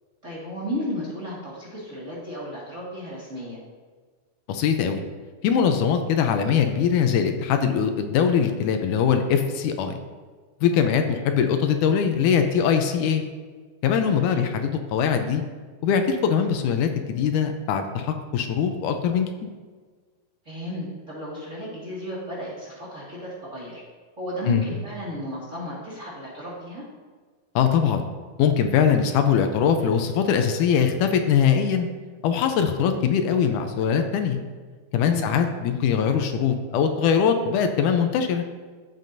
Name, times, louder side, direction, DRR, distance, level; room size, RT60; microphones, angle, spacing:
voice 1, 0.2-3.6 10.7-10.9 14.1-14.5 20.4-23.8 24.2-26.8 35.0-35.3, equal, 25° right, -7 dB, 2.0 m, -34 dB
voice 2, 4.5-5.0 5.4-10.0 10.6-13.2 13.8-15.4 15.8-19.3 24.5-24.6 27.6-28.0 28.4-31.9 32.2-34.4 34.9-38.4, left 7 dB, 80° left, 6 dB, 2.1 m, -22 dB
13.5 x 7.5 x 2.6 m, 1.5 s
omnidirectional pair, 3.7 m